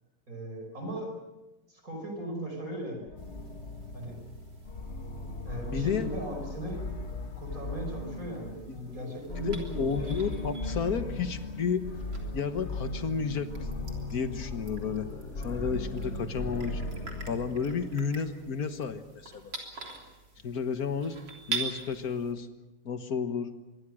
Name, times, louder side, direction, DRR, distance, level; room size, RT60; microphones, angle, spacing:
voice 1, 0.3-1.1 1.7-3.1 3.9-4.2 5.4-6.8 7.4-10.0, right 1 dB, 55° right, 3 dB, 5.4 m, -38 dB
sound 1, 3.1-18.8, left 2 dB, 40° left, 1.8 m, -38 dB
sound 2, 3.2-22.3, right 4 dB, 90° right, 4.1 m, -45 dB
voice 2, 5.7-6.1 8.7-8.8 9.4-11.9 12.3-13.5 14.1-15.1 15.4-16.8 17.3-19.5 20.4-21.2 21.5-22.5 22.9-23.5, left 6 dB, 60° left, 9 dB, 1.9 m, -31 dB
sound 3, 14.8-18.5, equal, ahead, 3.4 m, -50 dB
25.0 x 22.0 x 6.3 m, 1.0 s
omnidirectional pair, 1.8 m